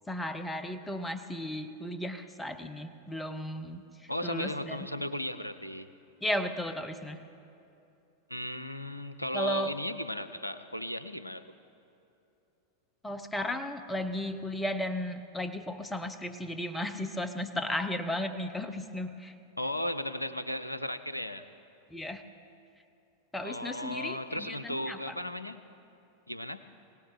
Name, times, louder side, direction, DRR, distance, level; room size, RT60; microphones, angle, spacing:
voice 1, 0.1-4.8 6.2-7.2 9.3-9.7 13.0-19.3 21.9-22.2 23.3-25.2, left 1 dB, 10° left, 9 dB, 0.8 m, -35 dB
voice 2, 4.1-5.9 8.3-11.4 19.6-21.4 23.4-25.6 26.3-26.6, left 1 dB, 85° left, 12 dB, 0.6 m, -36 dB
22.5 x 17.5 x 3.3 m, 2.7 s
figure-of-eight pair, 90°, 0 cm